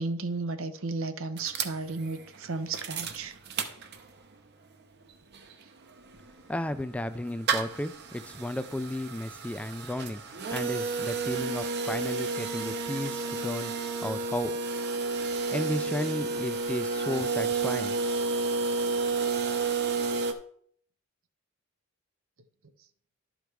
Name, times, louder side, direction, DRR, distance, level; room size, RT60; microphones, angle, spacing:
voice 1, 0.0-3.4, right 3 dB, 80° right, 10 dB, 0.8 m, -33 dB
sound 1, 1.4-4.3 4.7-4.8 5.0-20.3, right 4 dB, 55° right, 0.8 m, -31 dB
voice 2, 6.5-14.5 15.5-17.9, left 1 dB, 5° left, 11 dB, 0.4 m, -34 dB
11.0 x 5.2 x 4.6 m, 0.62 s
head